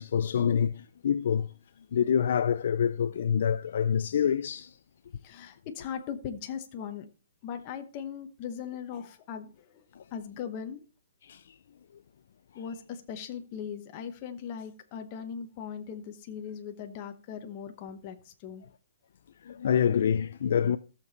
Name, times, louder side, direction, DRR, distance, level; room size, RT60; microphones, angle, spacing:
voice 1, 0.0-1.5 1.9-4.8 10.0-10.1 11.2-11.4 19.4-20.8, left 8 dB, 50° left, 0.4 m, -26 dB
voice 2, 5.2-7.0 7.4-9.8 10.1-10.8 12.5-18.6, left 7 dB, 25° left, 1.0 m, -39 dB
13.5 x 6.9 x 4.1 m
hypercardioid pair, 175°, 0 cm